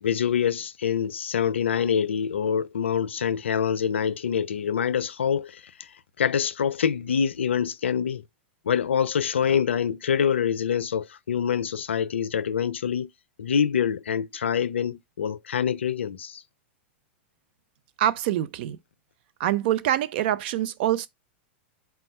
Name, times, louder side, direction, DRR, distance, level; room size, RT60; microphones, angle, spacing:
voice 1, 0.0-5.9 6.2-8.2 8.7-13.1 13.4-16.4, left 8 dB, 85° left, 0.4 m, -25 dB
voice 2, 18.0-18.8 19.4-21.1, right 12 dB, 60° right, 0.4 m, -25 dB
4.2 x 2.2 x 4.3 m
hypercardioid pair, 110°, 6 cm